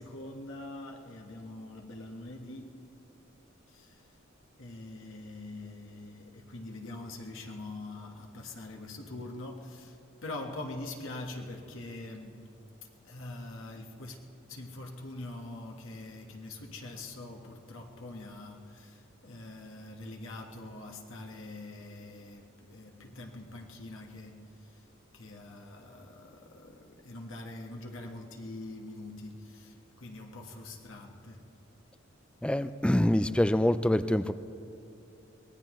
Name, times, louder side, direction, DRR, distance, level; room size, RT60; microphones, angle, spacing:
voice 1, 0.0-2.9 3.7-4.2 4.6-12.5 12.8-14.2 14.5-31.6, left 2 dB, 70° left, 1.4 m, -44 dB
voice 2, 32.4-34.3, left 1 dB, 5° left, 0.3 m, -25 dB
24.0 x 18.5 x 3.1 m
head